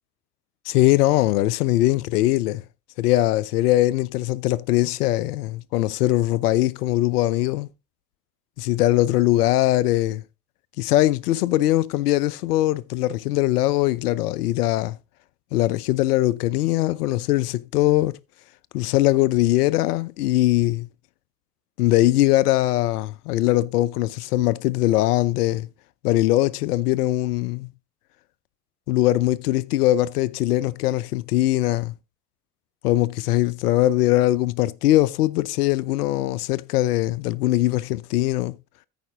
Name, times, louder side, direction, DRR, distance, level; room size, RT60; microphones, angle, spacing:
voice 1, 0.7-2.6 3.0-7.7 8.6-10.2 10.8-15.0 15.5-18.2 18.7-20.9 21.8-25.7 26.0-27.7 28.9-31.9 32.8-38.6, left 16 dB, 70° left, 0.6 m, -21 dB
13.5 x 5.1 x 3.8 m
figure-of-eight pair, 65°, 49 cm